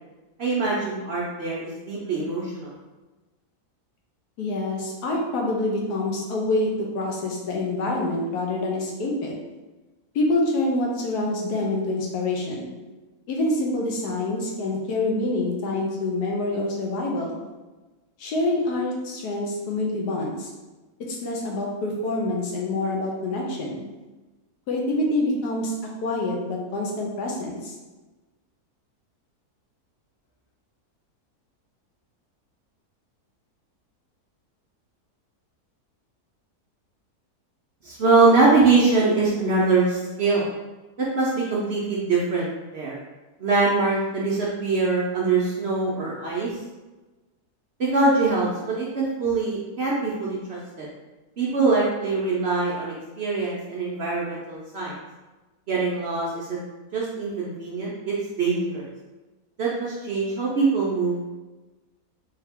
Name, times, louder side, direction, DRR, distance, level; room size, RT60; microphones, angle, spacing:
voice 1, 0.4-2.7 37.8-40.5 41.0-43.0 43.4-46.6 47.8-50.9 51.4-55.0 55.7-56.6 56.9-58.9 59.6-61.3, right 3 dB, 60° right, -5 dB, 0.7 m, -23 dB
voice 2, 4.4-9.3 10.1-12.7 13.3-17.4 18.2-20.5 21.1-23.8 24.7-25.7 26.0-27.7, left 2 dB, 80° left, -1 dB, 1.3 m, -26 dB
3.5 x 2.8 x 3.4 m, 1.2 s
omnidirectional pair, 1.7 m